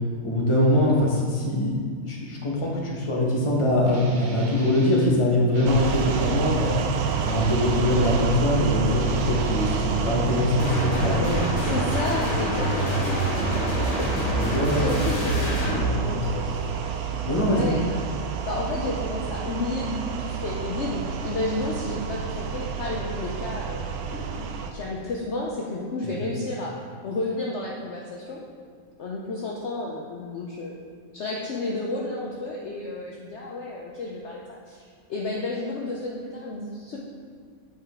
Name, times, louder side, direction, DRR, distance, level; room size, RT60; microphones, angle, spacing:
voice 1, 0.2-6.8 7.3-11.4 14.3-15.1 15.6-16.1 17.2-17.7, left 1 dB, 25° left, -3 dB, 1.1 m, -23 dB
Guitar, 3.8-5.2 5.5-8.5 8.9-11.1, right 2 dB, 55° right, 0.5 m, -38 dB
sound 1, 5.6-24.7, right 6 dB, 85° right, 1.1 m, -29 dB
voice 2, 6.6-6.9 11.6-14.1 14.4-15.7 16.0-16.8 17.5-18.0 18.4-24.5 24.7-26.8 27.0-28.4 29.0-30.7 31.1-37.0, left 2 dB, 55° left, -2 dB, 0.9 m, -32 dB
sound 2, 10.6-15.8, right 1 dB, 85° left, 2.5 m, -26 dB
8.6 x 4.9 x 3.7 m, 2.1 s
omnidirectional pair, 1.6 m